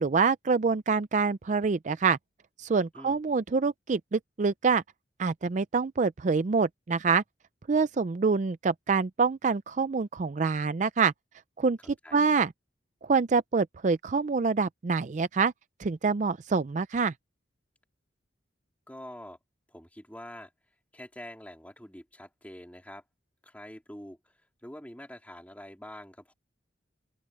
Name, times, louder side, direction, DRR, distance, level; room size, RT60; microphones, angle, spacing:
voice 1, 0.0-2.2 2.6-4.8 5.2-7.2 7.7-11.1 11.6-11.8 12.1-12.5 13.0-15.5 15.8-17.1, right 4 dB, 40° right, 0.4 m, -26 dB
voice 2, 11.8-12.4 18.9-19.4 19.7-20.5 20.9-23.0 23.4-26.3, left 1 dB, 10° left, 3.3 m, -46 dB
open air
head